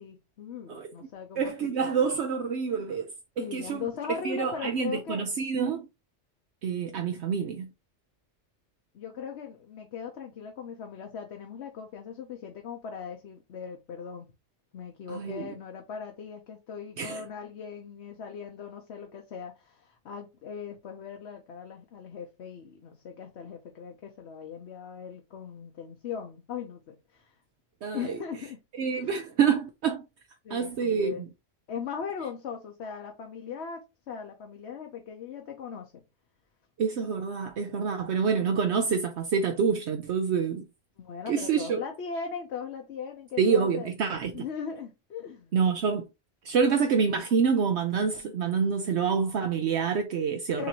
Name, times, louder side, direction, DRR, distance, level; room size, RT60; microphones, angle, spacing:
voice 1, 0.0-2.1 3.4-5.2 8.9-14.3 14.7-27.3 27.9-28.6 29.0-29.1 30.4-31.2 31.7-36.0 41.0-43.9 44.3-45.5 50.5-50.7, left 6 dB, 70° left, 1.0 m, -39 dB
voice 2, 1.4-3.1 3.4-5.9 6.6-7.7 15.1-15.5 17.0-17.2 27.8-28.2 28.8-30.0 30.5-31.3 36.8-40.6 41.3-41.8 43.4-44.4 45.5-46.0 46.4-50.7, right 6 dB, 70° right, 0.9 m, -27 dB
6.7 x 2.7 x 2.9 m
omnidirectional pair, 1.2 m